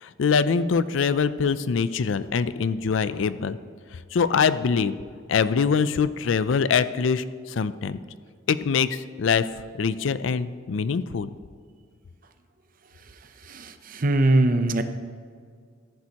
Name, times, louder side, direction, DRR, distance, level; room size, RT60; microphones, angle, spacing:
voice 1, 0.0-3.6 4.1-5.0 5.3-8.0 8.5-9.5 9.8-11.3, left 5 dB, 70° left, 15 dB, 0.4 m, -23 dB
voice 2, 13.5-14.8, right 2 dB, 45° right, 9 dB, 0.7 m, -21 dB
14.0 x 10.5 x 2.9 m, 2.1 s
head